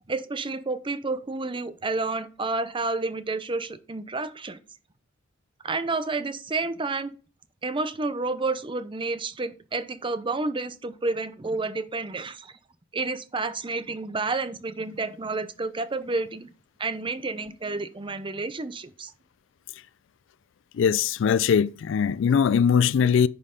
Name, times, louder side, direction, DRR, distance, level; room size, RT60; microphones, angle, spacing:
voice 1, 0.1-4.6 5.6-7.1 7.6-12.5 12.9-16.5 16.8-19.1, right 3 dB, 25° right, 0.6 m, -30 dB
voice 2, 20.7-23.3, left 7 dB, 65° left, 0.4 m, -21 dB
9.7 x 5.4 x 3.8 m
head